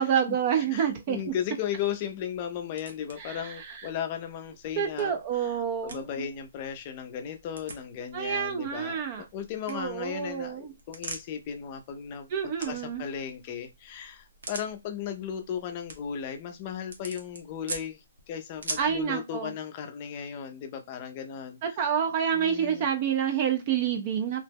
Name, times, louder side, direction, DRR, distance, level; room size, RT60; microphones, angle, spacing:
voice 1, 0.0-1.2 3.2-3.9 4.8-6.3 8.1-9.2 9.7-10.7 12.3-13.1 18.8-19.5 21.6-24.4, right 8 dB, 35° right, 0.4 m, -28 dB
voice 2, 0.7-5.6 5.8-21.6 22.3-22.9, left 8 dB, 30° left, 0.4 m, -36 dB
sound 1, 0.9-19.0, right 3 dB, 75° right, 0.9 m, -46 dB
2.8 x 2.1 x 3.4 m
hypercardioid pair, 160°, 0 cm